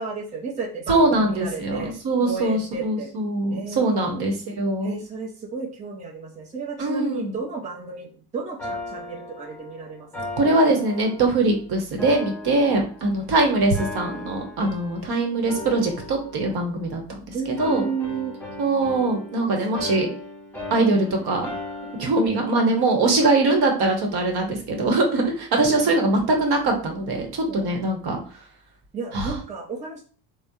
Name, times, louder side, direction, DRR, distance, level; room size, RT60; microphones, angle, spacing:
voice 1, 0.0-2.0 2.2-3.1 3.5-4.1 4.8-10.3 17.3-18.4 18.8-18.9 19.3-19.9 20.9-21.0 25.7-25.9 27.5-27.9 28.9-30.0, right 4 dB, 15° right, 0 dB, 0.5 m, -33 dB
voice 2, 0.9-5.0 6.8-7.4 10.4-17.0 17.3-17.9 18.6-20.1 20.7-21.5 22.0-28.2 29.1-29.3, right 2 dB, 50° right, 2 dB, 1.0 m, -22 dB
sound 1, 8.6-11.5 12.0-13.3 13.7-15.1 15.5-17.2 17.6-22.3, left 2 dB, 5° left, 1.1 m, -37 dB
3.3 x 2.1 x 2.6 m, 0.41 s
supercardioid pair, 75°, 48 cm